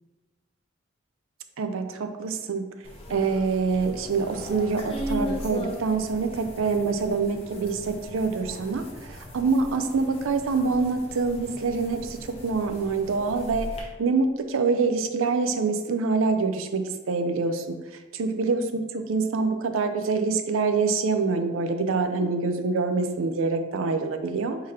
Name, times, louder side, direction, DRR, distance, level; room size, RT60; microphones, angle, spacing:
voice 1, 1.6-2.6 3.1-17.8 18.2-24.6, right 4 dB, 85° right, 8 dB, 0.5 m, -26 dB
sound 1, 2.8-13.8, equal, 30° left, 0.8 m, -38 dB
3.8 x 2.8 x 4.8 m, 1.2 s
head